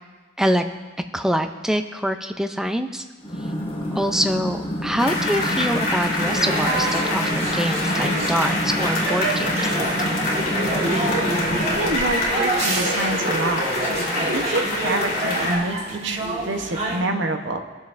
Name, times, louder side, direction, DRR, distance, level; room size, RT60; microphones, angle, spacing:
voice 1, 1.1-3.0 3.9-9.8, equal, 5° right, 7 dB, 0.5 m, -25 dB
sound 1, 3.2-12.4, equal, 30° left, 1.9 m, -29 dB
sound 2, 5.0-15.6, left 1 dB, 50° left, 2.8 m, -26 dB
sound 3, 6.3-17.0, right 2 dB, 35° right, 1.7 m, -27 dB
voice 2, 11.7-13.6 14.3-17.6, right 2 dB, 75° right, 5 dB, 0.9 m, -26 dB
21.5 x 7.2 x 2.6 m, 1.3 s
head